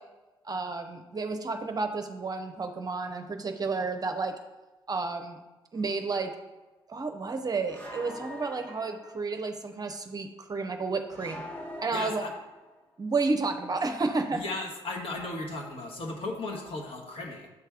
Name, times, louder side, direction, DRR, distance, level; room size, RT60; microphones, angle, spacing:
voice 1, 0.4-4.4 4.9-5.4 5.7-6.3 6.9-11.4 11.8-12.2 13.0-14.4, right 3 dB, 30° right, 6 dB, 0.7 m, -31 dB
sound 1, 5.7-5.9 7.7-9.3 11.1-12.8, left 1 dB, 15° left, 1.3 m, -43 dB
voice 2, 11.9-12.3 14.3-17.5, left 2 dB, 45° left, 0 dB, 1.5 m, -36 dB
6.9 x 3.3 x 4.9 m, 1.1 s
hypercardioid pair, 50°, 12 cm